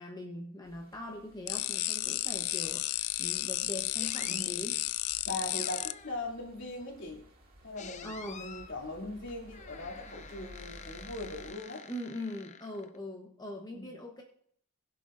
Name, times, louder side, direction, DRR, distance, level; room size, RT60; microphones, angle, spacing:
voice 1, 0.0-4.8 8.0-8.5 11.9-14.2, left 1 dB, 20° left, 0 dB, 1.0 m, -42 dB
sound 1, 0.6-11.5, equal, 45° right, 2.2 m, -55 dB
sound 2, 1.5-5.9, left 16 dB, 90° left, 0.4 m, -33 dB
sound 3, 4.0-4.5 5.5-6.3 7.8-8.7 9.5-13.0, left 6 dB, 35° left, 0.6 m, -48 dB
voice 2, 4.3-4.7 5.2-7.2 7.6-11.8 13.7-13.9, left 2 dB, 60° left, -1 dB, 2.8 m, -40 dB
20.5 x 7.6 x 2.6 m, 0.66 s
head